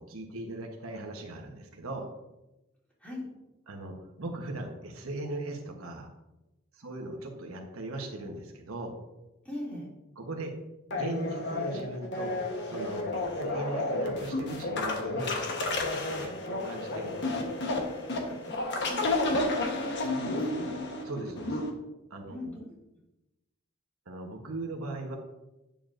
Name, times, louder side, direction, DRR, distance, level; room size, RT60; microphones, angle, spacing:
voice 1, 0.0-2.1 3.7-6.1 6.7-9.0 10.2-10.5 10.9-17.4 21.0-21.6 22.1-22.5 24.1-25.2, right 2 dB, 80° right, 2 dB, 1.1 m, -39 dB
voice 2, 9.4-9.9 18.3-18.6 18.8-20.9 22.3-22.6, left 1 dB, 5° left, -6 dB, 2.6 m, -41 dB
sound 1, 10.9-21.7, left 2 dB, 55° left, 1.2 m, -31 dB
9.0 x 7.0 x 2.6 m, 0.96 s
head